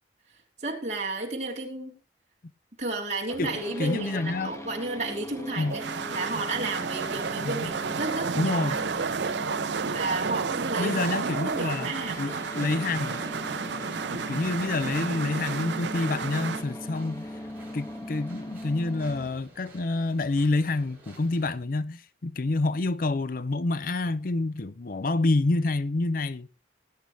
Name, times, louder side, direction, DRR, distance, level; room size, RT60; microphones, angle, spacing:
voice 1, 0.6-2.0 2.8-9.1 9.9-11.0 11.4-12.5, right 2 dB, 40° right, 3.1 m, -33 dB
sound 1, 3.3-19.3, left 1 dB, 15° left, 1.5 m, -40 dB
voice 2, 3.4-4.5 5.6-5.8 7.4-7.7 8.4-8.8 10.8-11.9 12.2-13.3 14.1-17.3 17.7-26.5, left 2 dB, 50° left, 0.5 m, -28 dB
sound 2, 5.5-16.6, right 5 dB, 75° right, 0.6 m, -32 dB
sound 3, 6.8-21.6, right 1 dB, 10° right, 5.8 m, -52 dB
19.5 x 9.8 x 3.1 m
head